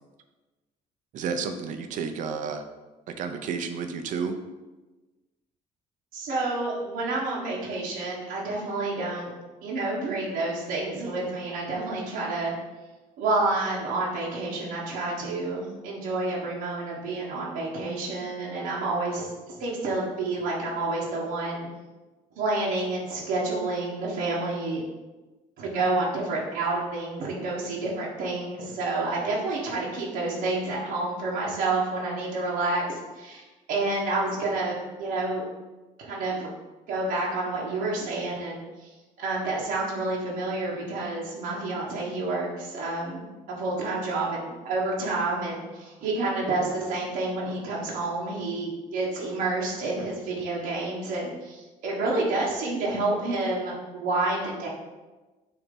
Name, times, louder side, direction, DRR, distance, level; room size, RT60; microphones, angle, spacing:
voice 1, 1.1-2.6 3.1-4.4, right 5 dB, 60° right, 7 dB, 0.7 m, -31 dB
voice 2, 6.1-9.3 9.6-12.5 13.2-21.7 22.4-24.8 25.6-35.4 36.0-36.5 36.9-54.7, right 2 dB, 85° right, -5 dB, 1.3 m, -29 dB
7.0 x 2.9 x 5.3 m, 1.2 s
cardioid pair, 140°, 14 cm